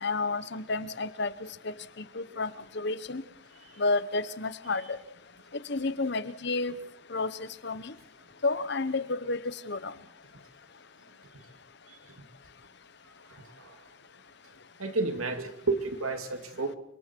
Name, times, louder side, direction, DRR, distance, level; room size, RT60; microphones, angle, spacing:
voice 1, 0.0-3.2 3.8-5.0 5.7-6.7 7.1-7.9 8.4-9.9, left 3 dB, 55° left, 14 dB, 1.0 m, -31 dB
voice 2, 14.8-16.8, right 3 dB, 90° right, 6 dB, 2.6 m, -31 dB
29.5 x 25.0 x 4.6 m, 0.70 s
head